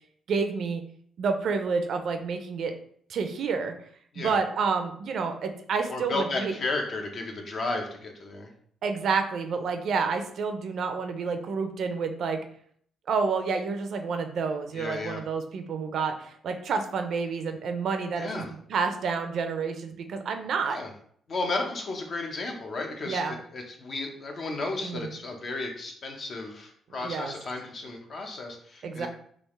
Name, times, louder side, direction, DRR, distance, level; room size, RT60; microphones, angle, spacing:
voice 1, 0.3-0.8 1.2-2.7 3.1-3.7 4.2-6.5 8.8-12.4 13.1-20.8 23.1-23.4 24.8-25.1 27.0-27.3 28.8-29.1, right 5 dB, 65° right, 6 dB, 0.4 m, -29 dB
voice 2, 5.9-8.5 14.7-15.2 18.2-18.5 20.7-20.9 21.3-29.1, left 3 dB, 50° left, 2 dB, 0.7 m, -33 dB
3.4 x 2.4 x 3.1 m, 0.62 s
cardioid pair, 90°, 0 cm